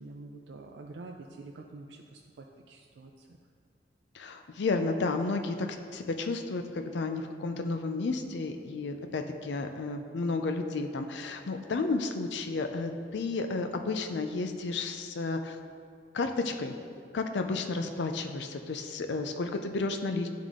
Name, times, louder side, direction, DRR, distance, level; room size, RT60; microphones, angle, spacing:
voice 1, 0.0-3.4, right 2 dB, 80° right, 1 dB, 0.4 m, -47 dB
voice 2, 4.1-5.7 5.9-15.6 16.1-16.7 17.1-20.3, left 3 dB, 80° left, 6 dB, 0.5 m, -32 dB
10.5 x 3.7 x 3.6 m, 2.2 s
head